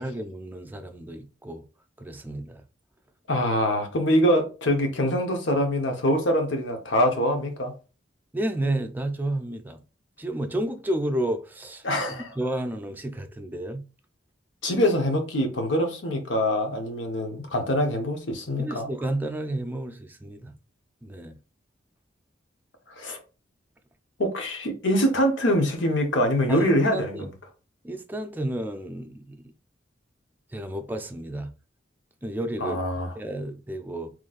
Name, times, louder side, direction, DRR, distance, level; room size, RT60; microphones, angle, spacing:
voice 1, 0.0-1.6 2.0-2.6 8.3-9.8 10.2-13.9 18.6-20.5 21.0-21.4 26.5-27.3 27.8-29.4 30.5-31.5 32.2-32.8 33.1-34.1, right 1 dB, 10° right, 0.4 m, -31 dB
voice 2, 3.3-7.7 11.8-12.4 14.6-18.9 23.0-23.2 24.2-27.3 32.6-33.1, equal, 85° left, 1.0 m, -24 dB
3.9 x 3.1 x 2.4 m
head